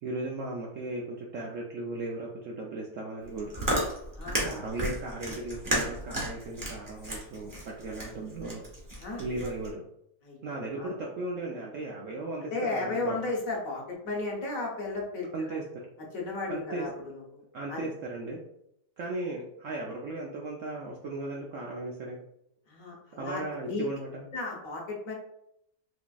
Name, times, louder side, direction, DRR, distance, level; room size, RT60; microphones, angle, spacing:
voice 1, 0.0-3.5 4.4-8.6 9.2-9.8 10.4-13.2 15.3-15.9 16.5-16.9 17.5-18.4 19.0-22.2 23.2-24.3, right 2 dB, 70° right, -2 dB, 0.7 m, -36 dB
Chewing mastication, 3.2-9.7, right 1 dB, 25° right, 0.4 m, -33 dB
voice 2, 4.1-4.5 9.0-9.2 10.2-10.5 10.8-10.9 12.5-15.6 16.1-17.4 17.7-17.9 22.7-23.9 24.3-25.1, left 3 dB, 60° left, -2 dB, 1.1 m, -34 dB
4.2 x 2.9 x 2.2 m, 0.78 s
omnidirectional pair, 1.8 m